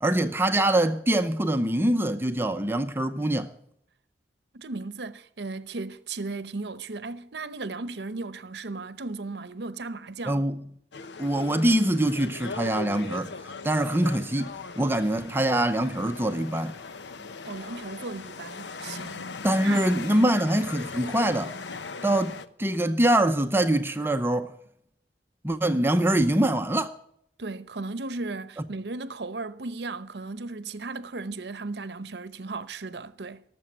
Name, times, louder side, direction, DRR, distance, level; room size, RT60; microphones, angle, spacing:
voice 1, 0.0-3.5 10.3-10.6 11.2-13.3 13.6-16.8 19.4-21.6 22.0-24.5 25.4-26.9, right 1 dB, 15° right, 0.7 m, -24 dB
voice 2, 4.5-10.5 17.4-19.3 19.6-19.8 20.1-20.3 27.4-33.4, right 3 dB, 75° right, 0.8 m, -36 dB
sound 1, 10.9-22.5, left 4 dB, 85° left, 0.9 m, -39 dB
18.5 x 7.6 x 9.3 m
head